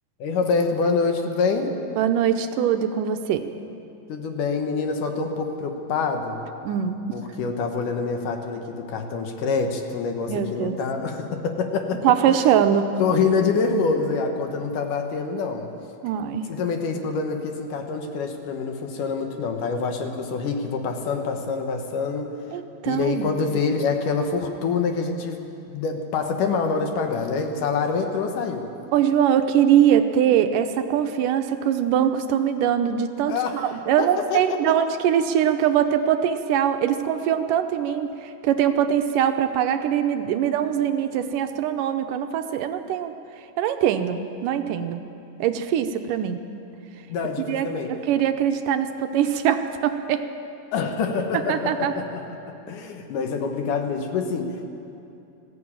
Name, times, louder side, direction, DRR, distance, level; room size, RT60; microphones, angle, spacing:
voice 1, 0.2-1.7 4.1-6.4 7.1-12.1 13.0-15.7 16.5-22.3 22.9-25.4 25.7-28.7 33.3-34.7 47.1-47.9 50.7-54.6, left 4 dB, 70° left, 5 dB, 2.8 m, -26 dB
voice 2, 2.0-3.5 6.6-7.0 10.3-10.8 12.0-12.9 16.0-16.5 22.5-23.3 28.9-43.1 43.6-45.0 45.4-46.4 47.5-50.3 51.5-51.9, right 9 dB, 75° right, 8 dB, 2.3 m, -22 dB
20.0 x 15.0 x 8.8 m, 2.7 s
omnidirectional pair, 4.0 m